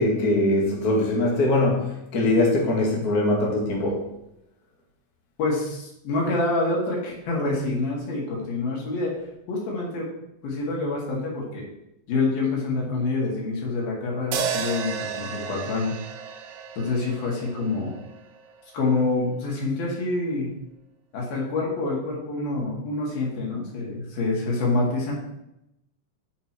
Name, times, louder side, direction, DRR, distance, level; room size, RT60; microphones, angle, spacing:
voice 1, 0.0-4.0, left 2 dB, 35° left, -3 dB, 1.7 m, -22 dB
voice 2, 5.4-9.2 9.5-10.1 10.4-11.7 12.1-16.0 16.8-18.0 18.7-20.5 21.1-25.1, left 3 dB, 75° left, -3 dB, 3.9 m, -26 dB
sound 1, 14.3-18.6, right 6 dB, 85° right, 2.6 m, -33 dB
9.1 x 6.4 x 4.4 m, 0.85 s
omnidirectional pair, 4.3 m